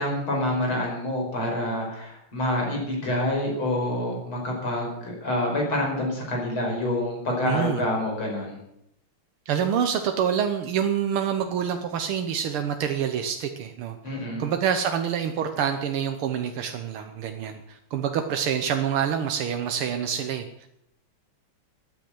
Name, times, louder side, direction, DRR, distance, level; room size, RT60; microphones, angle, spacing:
voice 1, 0.0-8.6 14.0-14.5, left 1 dB, 75° left, -1 dB, 6.0 m, -27 dB
voice 2, 7.4-7.9 9.5-14.0 14.4-20.7, right 8 dB, 85° right, 6 dB, 1.9 m, -27 dB
13.5 x 9.8 x 7.8 m, 0.78 s
omnidirectional pair, 2.3 m